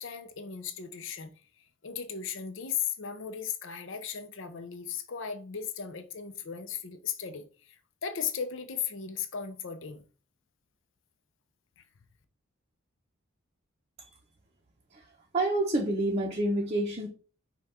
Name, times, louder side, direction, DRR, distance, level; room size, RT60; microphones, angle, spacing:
voice 1, 0.0-1.4 1.8-7.8 8.0-10.0 11.8-11.9, left 7 dB, 60° left, 0.6 m, -36 dB
voice 2, 14.9-17.1, right 1 dB, 30° right, 0.6 m, -28 dB
5.4 x 2.3 x 4.3 m
head